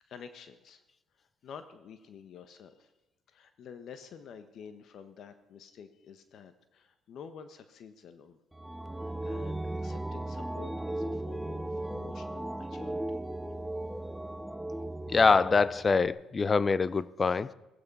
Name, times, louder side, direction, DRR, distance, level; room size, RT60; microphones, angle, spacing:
voice 1, 0.1-0.8 1.2-2.9 3.3-8.4 8.9-13.2, left 7 dB, 65° left, 1.3 m, -49 dB
sound 1, 8.5-16.1, right 1 dB, 5° right, 0.7 m, -37 dB
voice 2, 15.1-17.5, left 4 dB, 35° left, 0.6 m, -24 dB
17.0 x 14.5 x 5.6 m
supercardioid pair, 75°, 0 cm